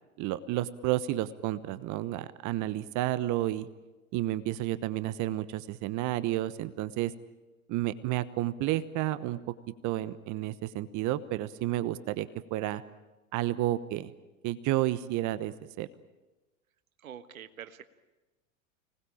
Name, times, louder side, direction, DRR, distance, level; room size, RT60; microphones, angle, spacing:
voice 1, 0.2-3.7 4.1-7.1 7.7-9.4 9.8-12.8 13.3-14.1 14.4-15.9, right 15 dB, 45° right, 15 dB, 1.1 m, -31 dB
voice 2, 17.0-17.8, right 9 dB, 80° right, 12 dB, 1.4 m, -45 dB
25.0 x 19.5 x 8.7 m, 1.1 s
hypercardioid pair, 90°, 41 cm